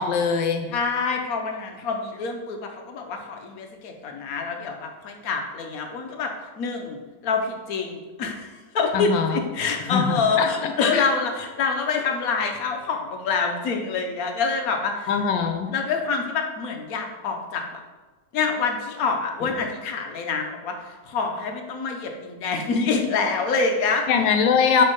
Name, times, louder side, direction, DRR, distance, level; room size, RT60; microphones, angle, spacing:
voice 1, 0.0-0.7 8.9-9.4 9.9-11.1 15.1-15.7 24.1-24.8, left 6 dB, 85° left, 6 dB, 1.3 m, -22 dB
voice 2, 0.7-6.3 6.6-7.0 7.2-15.1 15.7-17.8 18.3-24.0, left 4 dB, 60° left, 3 dB, 1.0 m, -26 dB
5.6 x 3.5 x 5.3 m, 1.3 s
omnidirectional pair, 1.9 m